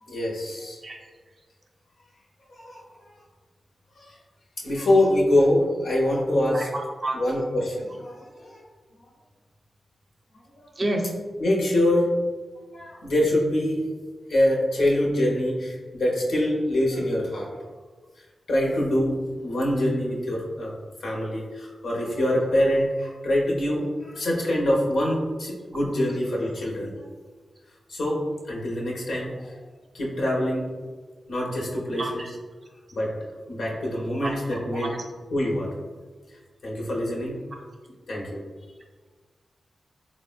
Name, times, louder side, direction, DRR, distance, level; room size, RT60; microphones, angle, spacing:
voice 1, 0.0-0.8 2.6-2.8 4.0-4.2 4.6-6.7 7.1-8.6 11.4-12.1 12.7-13.8 14.3-17.6 18.5-20.7 21.0-27.1 27.9-29.6 29.9-30.7 31.3-32.4 32.9-33.1 33.5-35.0 35.3-35.7 36.6-37.4 38.1-38.4, left 1 dB, 85° left, -3 dB, 0.6 m, -25 dB
voice 2, 6.5-7.2 10.8-11.1 32.0-32.3 34.2-34.4 34.7-34.9, right 1 dB, 45° right, 1 dB, 0.5 m, -29 dB
3.5 x 2.0 x 2.3 m, 1.4 s
cardioid pair, 60°, 0 cm